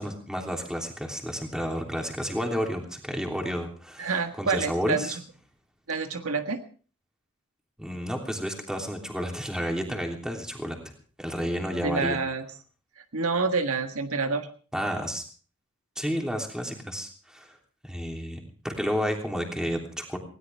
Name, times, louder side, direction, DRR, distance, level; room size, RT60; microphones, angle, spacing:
voice 1, 0.0-5.2 7.8-10.9 11.2-12.2 14.7-15.2 16.0-17.6 17.8-20.2, equal, 5° right, 1 dB, 3.2 m, -31 dB
voice 2, 4.0-5.1 5.9-6.6 11.8-12.4 13.0-14.5, right 4 dB, 75° right, 6 dB, 1.6 m, -27 dB
20.0 x 17.5 x 3.5 m, 0.40 s
head